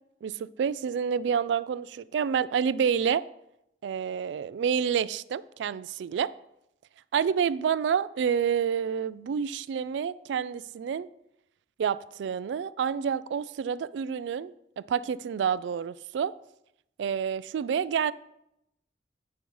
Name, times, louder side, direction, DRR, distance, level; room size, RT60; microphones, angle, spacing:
voice 1, 0.2-3.2 3.8-6.3 7.1-11.1 11.8-16.3 17.0-18.1, right 7 dB, 85° right, 0.3 m, -28 dB
8.5 x 5.3 x 4.6 m
head